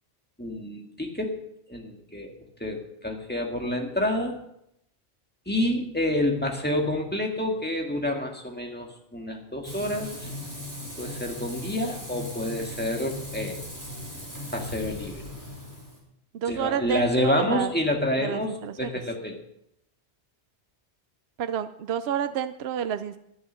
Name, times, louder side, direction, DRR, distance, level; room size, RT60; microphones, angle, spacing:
voice 1, 0.4-1.4 1.7-2.3 2.6-4.3 5.5-10.3 11.0-13.6 14.5-15.2 16.5-19.4, left 1 dB, 10° left, 2 dB, 1.8 m, -28 dB
Frying (food), 9.6-16.0, left 1 dB, 15° right, 3.3 m, -38 dB
voice 2, 16.3-17.7 18.2-18.9 21.4-23.2, right 9 dB, 70° right, 11 dB, 0.8 m, -29 dB
12.0 x 9.6 x 6.4 m, 0.77 s
omnidirectional pair, 1.1 m